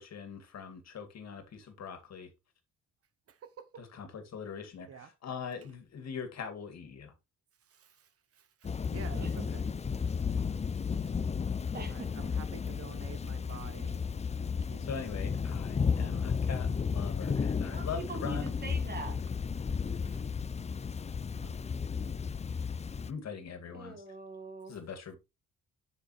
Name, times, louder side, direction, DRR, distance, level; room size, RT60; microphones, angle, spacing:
voice 1, 0.0-2.3 3.8-7.1 14.8-18.5 23.1-24.0 24.7-25.2, left 6 dB, 60° left, 2.2 m, -42 dB
voice 2, 3.3-3.8 4.9-5.1 7.7-9.7 10.0-10.2 10.7-11.1 11.9-14.0 14.4-14.9 16.0-16.3 20.0-20.2 21.4-21.5, right 7 dB, 50° right, 0.7 m, -50 dB
Thunder / Rain, 8.6-23.1, left 6 dB, 20° left, 0.5 m, -33 dB
voice 3, 9.1-9.5 11.7-12.3 17.6-19.2 23.7-24.8, right 3 dB, 30° right, 2.0 m, -43 dB
7.2 x 7.0 x 3.1 m
cardioid pair, 90°, 30 cm